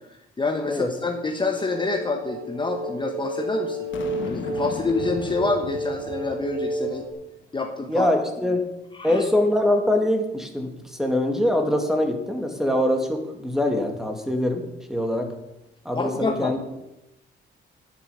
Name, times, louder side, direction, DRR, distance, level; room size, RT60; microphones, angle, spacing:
voice 1, 0.4-3.8 4.3-7.0 7.5-8.1 8.9-9.2 15.9-16.5, left 3 dB, 25° left, 3 dB, 1.3 m, -27 dB
sound 1, 1.5-7.1, right 2 dB, 80° right, 2.4 m, -31 dB
Boom, 3.9-7.2, left 5 dB, 70° left, 1.5 m, -37 dB
voice 2, 7.9-8.6 9.0-15.3 15.9-16.6, left 1 dB, ahead, 4 dB, 2.1 m, -23 dB
10.5 x 9.7 x 5.7 m, 0.91 s
cardioid pair, 90°, 20 cm